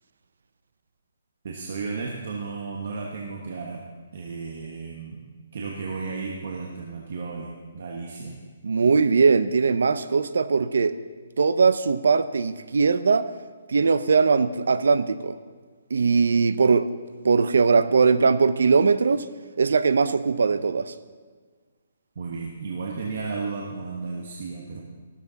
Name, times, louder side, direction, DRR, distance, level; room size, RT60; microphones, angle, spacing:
voice 1, 1.4-3.9 4.1-5.2 5.5-8.4 22.1-24.8, right 4 dB, 45° right, -1 dB, 1.4 m, -33 dB
voice 2, 8.6-11.0 11.4-13.3 13.7-15.4 15.9-16.9 17.2-19.3 19.6-20.9, right 5 dB, 75° right, 14 dB, 0.7 m, -20 dB
14.0 x 13.0 x 4.1 m, 1.5 s
hypercardioid pair, 180°, 0 cm